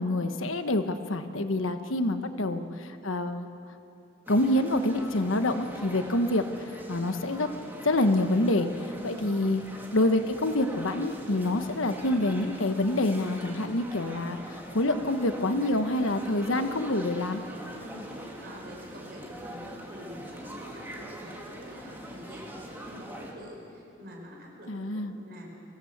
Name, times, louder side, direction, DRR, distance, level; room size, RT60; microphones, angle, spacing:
voice 1, 0.0-3.5 4.3-6.4 6.9-7.5 7.8-8.7 9.0-9.6 9.9-17.4 24.7-25.1, left 1 dB, 90° left, 8 dB, 1.2 m, -27 dB
sound 1, 4.3-23.3, equal, 10° right, 2.5 m, -42 dB
voice 2, 17.8-25.5, equal, 50° right, -1 dB, 5.5 m, -47 dB
23.0 x 16.5 x 8.1 m, 3.0 s
head